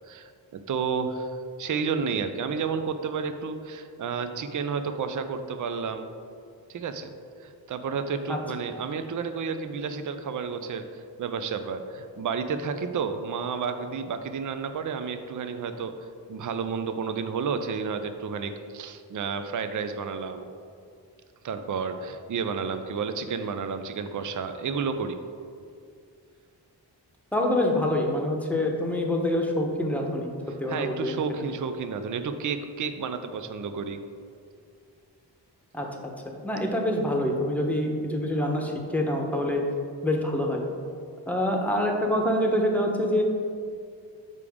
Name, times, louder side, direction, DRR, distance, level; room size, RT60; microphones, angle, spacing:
voice 1, 0.1-6.1 6.7-7.1 7.4-15.9 16.3-20.5 21.4-25.2 30.7-34.0, right 5 dB, 45° right, 8 dB, 0.5 m, -31 dB
voice 2, 27.3-30.3 30.6-31.1 35.7-35.9 36.4-39.6 40.0-40.6 41.3-43.2, left 1 dB, 5° left, 1 dB, 0.9 m, -26 dB
6.7 x 4.8 x 3.6 m, 2.3 s
cardioid pair, 55°, 44 cm